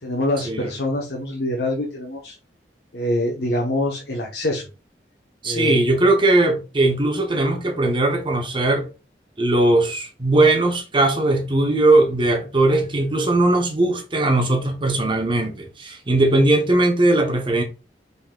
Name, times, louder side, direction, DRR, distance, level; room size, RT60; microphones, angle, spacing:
voice 1, 0.0-2.3 2.9-4.6 5.4-5.8, left 1 dB, 65° left, 1.1 m, -25 dB
voice 2, 5.4-8.9 9.4-17.6, right 2 dB, 30° right, 1.0 m, -19 dB
5.4 x 4.1 x 2.3 m
head